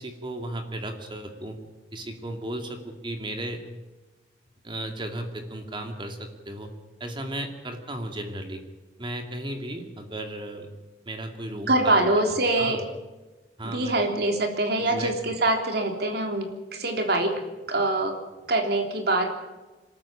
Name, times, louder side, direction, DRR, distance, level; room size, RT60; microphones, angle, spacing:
voice 1, 0.0-1.6 1.9-3.6 4.6-6.7 7.0-8.6 9.0-10.7 11.1-11.9 12.6-12.8 13.6-14.0 14.7-15.1, right 1 dB, 30° right, 5 dB, 2.3 m, -35 dB
voice 2, 11.7-12.8 13.6-17.3 17.7-18.2 18.5-19.4, right 2 dB, 65° right, 4 dB, 3.3 m, -24 dB
25.0 x 14.0 x 8.8 m, 1.2 s
head